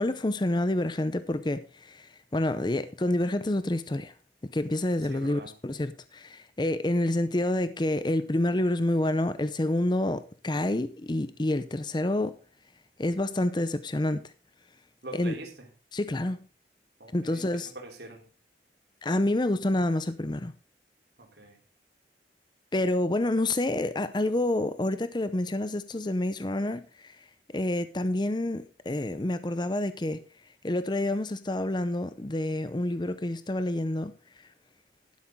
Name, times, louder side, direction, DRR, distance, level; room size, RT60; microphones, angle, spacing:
voice 1, 0.0-2.1 2.3-4.1 4.5-12.4 13.0-14.3 15.1-15.3 15.9-16.4 17.1-17.7 19.0-20.5 22.7-27.2 27.5-30.2 30.6-34.1, left 1 dB, 25° left, 0.6 m, -28 dB
voice 2, 5.0-5.6 15.0-15.7 17.0-18.2 21.2-21.6, right 2 dB, 70° right, 3.3 m, -44 dB
11.5 x 10.5 x 3.7 m
head